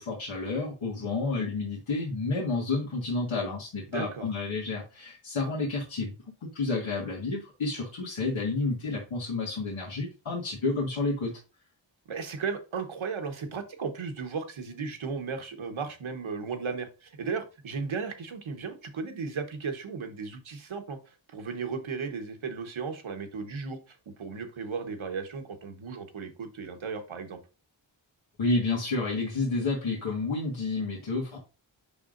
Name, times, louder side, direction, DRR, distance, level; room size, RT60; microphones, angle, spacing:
voice 1, 0.0-6.1 6.4-11.3 28.4-31.4, left 3 dB, 85° left, 1.8 m, -30 dB
voice 2, 3.9-4.3 12.1-27.4, right 5 dB, 80° right, 1.3 m, -35 dB
6.9 x 5.5 x 2.5 m
cardioid pair, 55°, 47 cm